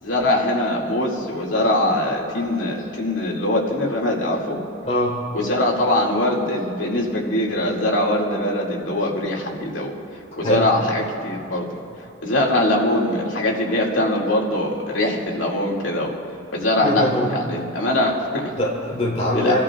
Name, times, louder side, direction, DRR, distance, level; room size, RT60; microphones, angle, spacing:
voice 1, 0.0-4.6 5.3-10.0 10.4-11.7 12.2-16.2 16.5-18.5 19.3-19.5, left 1 dB, 85° left, -2 dB, 2.4 m, -22 dB
voice 2, 4.8-5.2 10.4-10.7 16.8-17.3 18.6-19.6, left 1 dB, 35° left, -5 dB, 3.6 m, -22 dB
28.5 x 13.5 x 2.4 m, 2.4 s
head